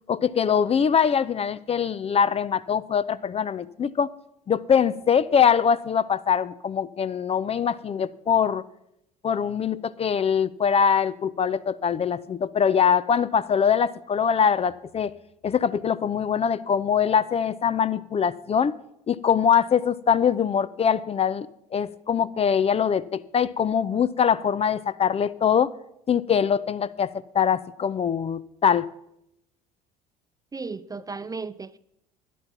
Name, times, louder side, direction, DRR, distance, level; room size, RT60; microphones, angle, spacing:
voice 1, 0.1-4.1 4.5-8.6 9.2-15.1 15.4-18.8 19.1-21.5 21.7-25.7 26.1-27.1 27.3-28.9, left 7 dB, 30° left, 0.5 m, -23 dB
voice 2, 30.5-31.8, right 4 dB, 20° right, 0.5 m, -35 dB
11.5 x 10.0 x 5.9 m
hypercardioid pair, 60°, 20 cm